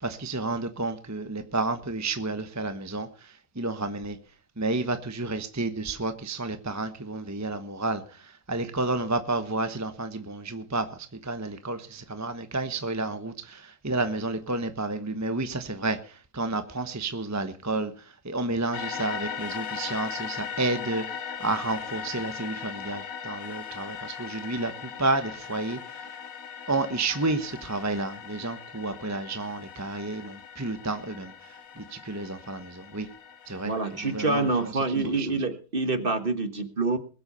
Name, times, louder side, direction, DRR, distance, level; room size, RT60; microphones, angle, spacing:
voice 1, 0.0-4.2 4.6-26.1 26.7-33.1 33.5-34.7 35.0-35.3, right 2 dB, 10° right, 9 dB, 1.0 m, -31 dB
sound 1, 18.7-34.7, left 7 dB, 60° left, 1.5 m, -39 dB
voice 2, 33.6-37.0, right 3 dB, 35° right, 9 dB, 1.6 m, -27 dB
21.5 x 7.9 x 5.6 m, 0.37 s
omnidirectional pair, 1.7 m